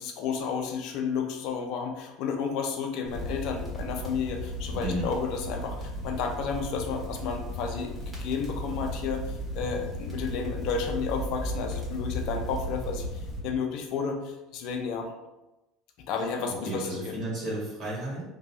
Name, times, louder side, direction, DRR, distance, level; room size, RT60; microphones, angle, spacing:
voice 1, 0.0-15.1 16.1-17.2, left 6 dB, 60° left, 3 dB, 0.4 m, -32 dB
sound 1, 3.0-13.4, equal, ahead, 1.3 m, -35 dB
voice 2, 4.7-5.1 16.6-18.2, right 1 dB, 55° right, -5 dB, 1.4 m, -33 dB
2.8 x 2.3 x 2.6 m, 0.98 s
hypercardioid pair, 80°, 0 cm